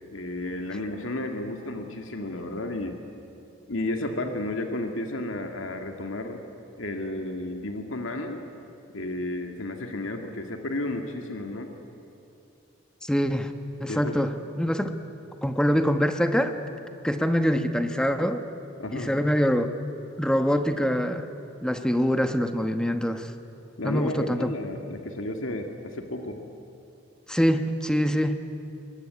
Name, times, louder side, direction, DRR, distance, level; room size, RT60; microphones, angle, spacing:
voice 1, 0.1-3.0 3.7-6.4 6.8-8.4 8.9-11.7 13.9-14.1 18.8-19.1 23.8-26.4, left 1 dB, 80° left, 4 dB, 2.0 m, -32 dB
voice 2, 13.0-13.5 13.8-14.9 15.4-16.5 17.0-18.5 18.9-19.7 20.2-21.3 21.6-23.3 23.8-24.5 27.3-28.4, equal, 5° left, 8 dB, 1.1 m, -24 dB
23.0 x 20.5 x 9.6 m, 2.7 s
head